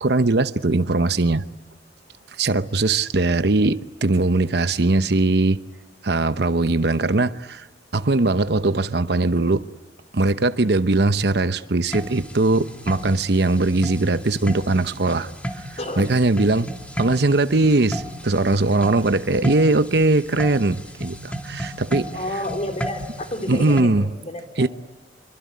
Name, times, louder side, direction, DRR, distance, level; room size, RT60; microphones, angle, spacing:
voice 1, 0.0-1.4 2.4-5.6 6.0-7.7 7.9-9.6 10.1-15.3 16.0-16.7 17.0-22.1 23.5-24.1 24.6-24.7, right 2 dB, 65° right, 0.9 m, -20 dB
sound 1, 11.9-23.8, equal, 10° left, 2.2 m, -34 dB
voice 2, 15.8-16.1 22.1-24.7, left 1 dB, 40° left, 3.6 m, -30 dB
26.0 x 23.5 x 9.5 m
head